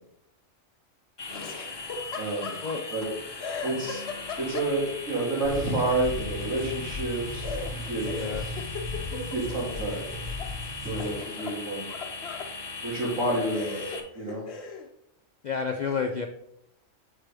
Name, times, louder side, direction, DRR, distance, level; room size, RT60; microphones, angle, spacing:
sound 1, 1.2-14.0, left 4 dB, 25° left, 0.6 m, -39 dB
Laughter, 1.3-3.1 3.4-5.1 7.4-10.5 10.9-12.5 13.1-13.2 13.5-14.9, left 4 dB, 55° left, 1.0 m, -39 dB
voice 1, 2.2-2.6 2.9-3.1 3.6-4.0 4.4-7.6 7.9-8.1 9.1-10.1 10.8-11.8 12.8-14.4, right 2 dB, 80° right, -4 dB, 2.6 m, -29 dB
sound 2, 5.4-11.1, left 2 dB, 40° right, 2.1 m, -37 dB
voice 2, 8.1-8.5 10.9-11.2 15.4-16.3, left 5 dB, 75° left, 4 dB, 0.4 m, -31 dB
7.7 x 4.5 x 3.4 m, 0.74 s
omnidirectional pair, 1.4 m